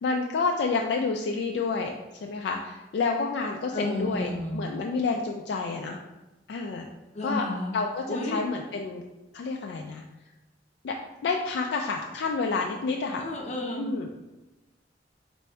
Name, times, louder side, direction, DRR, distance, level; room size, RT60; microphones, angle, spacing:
voice 1, 0.0-1.9 2.2-6.0 6.5-6.9 7.2-7.5 7.7-9.0 9.3-10.0 10.8-11.0 11.2-13.3 13.7-14.1, left 4 dB, 65° left, 2 dB, 0.3 m, -29 dB
voice 2, 3.7-4.6 7.1-7.7 8.1-8.4 13.2-13.8, left 1 dB, 40° left, -1 dB, 0.7 m, -31 dB
3.2 x 2.6 x 4.5 m, 1.1 s
head